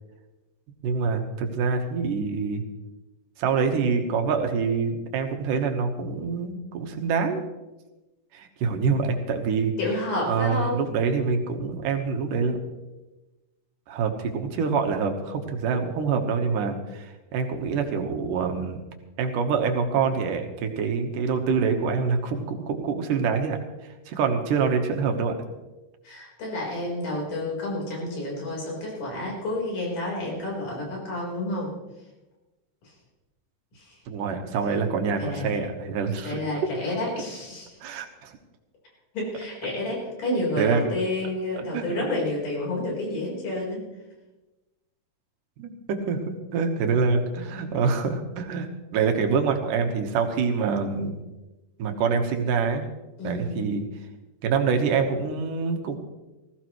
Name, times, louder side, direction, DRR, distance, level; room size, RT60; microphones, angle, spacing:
voice 1, 0.8-2.6 3.4-7.4 8.3-9.7 10.3-12.6 13.9-18.8 19.2-25.4 34.1-36.4 37.8-38.4 40.3-40.8 41.7-42.1 45.6-48.7 48.9-51.2 51.8-52.9 53.2-53.8 54.4-56.0, right 5 dB, 85° right, 4 dB, 2.8 m, -26 dB
voice 2, 9.8-10.8 26.0-31.7 32.8-32.9 33.7-34.0 35.2-35.6 36.2-37.7 39.1-43.8 53.2-53.6, left 2 dB, 80° left, -3 dB, 5.9 m, -30 dB
20.0 x 15.0 x 3.1 m, 1.1 s
omnidirectional pair, 3.7 m